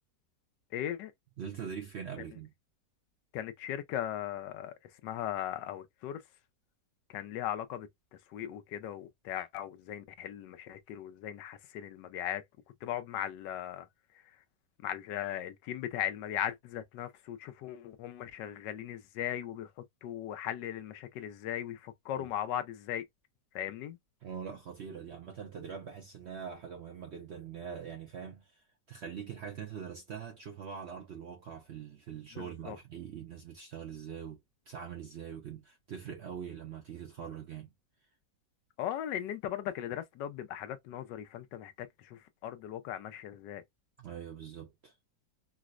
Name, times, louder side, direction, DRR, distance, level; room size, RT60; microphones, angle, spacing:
voice 1, 0.7-1.1 3.3-4.7 5.0-6.2 7.1-7.9 8.3-12.4 12.8-13.9 14.8-19.7 20.0-23.0 23.5-24.0 32.3-32.8 38.8-43.6, left 11 dB, 85° left, 1.2 m, -38 dB
voice 2, 1.4-2.5 22.2-22.3 24.2-34.4 34.7-37.7 44.0-45.0, right 7 dB, 65° right, 0.6 m, -43 dB
4.8 x 2.0 x 2.3 m
omnidirectional pair, 1.9 m